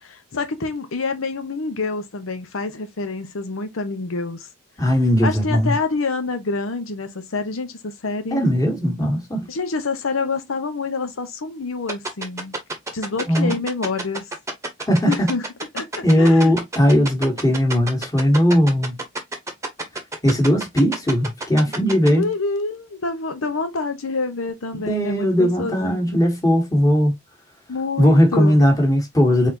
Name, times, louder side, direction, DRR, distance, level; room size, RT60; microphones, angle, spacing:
voice 1, 0.0-4.5 5.2-8.4 9.5-12.6 12.9-14.3 15.1-15.5 15.7-16.5 22.1-26.0 27.7-28.6, left 3 dB, 85° left, 0.8 m, -27 dB
voice 2, 4.8-5.7 8.3-9.5 13.3-13.6 14.9-15.3 16.0-19.0 20.2-22.3 24.8-27.1 28.0-29.5, equal, 15° left, 1.8 m, -18 dB
sound 1, 11.9-22.1, right 3 dB, 15° right, 1.0 m, -27 dB
4.2 x 4.2 x 2.8 m
head